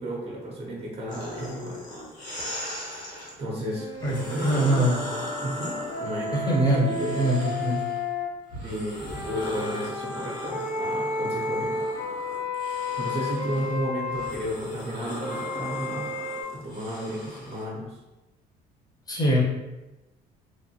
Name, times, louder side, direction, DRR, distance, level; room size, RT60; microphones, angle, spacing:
voice 1, 0.0-1.8 3.4-4.9 5.4-7.2 8.6-12.0 13.0-18.0, equal, 35° right, -2 dB, 0.6 m, -33 dB
sound 1, 1.1-3.3 3.9-8.0 8.5-17.6, left 1 dB, 50° left, 1.0 m, -38 dB
sound 2, 3.7-8.3 9.0-14.4 15.2-16.4, left 2 dB, 85° left, 1.3 m, -32 dB
voice 2, 4.4-5.0 6.5-6.9 7.1-7.8 19.1-19.4, right 1 dB, 20° left, -3 dB, 0.8 m, -22 dB
3.0 x 2.0 x 2.7 m, 1.0 s
cardioid pair, 110°, 17 cm